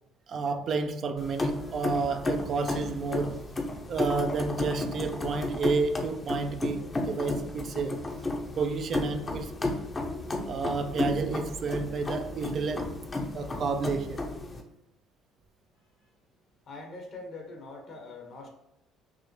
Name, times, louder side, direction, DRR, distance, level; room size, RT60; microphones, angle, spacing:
voice 1, 0.3-3.5 3.9-8.0 8.6-9.5 10.5-12.9 13.3-14.2, right 4 dB, 50° right, 0.4 m, -30 dB
sound 1, 1.2-14.6, left 2 dB, 25° left, 0.8 m, -33 dB
voice 2, 15.8-16.1 16.7-18.5, left 3 dB, 50° left, 1.2 m, -43 dB
6.0 x 2.0 x 3.2 m
supercardioid pair, 95°, 0 cm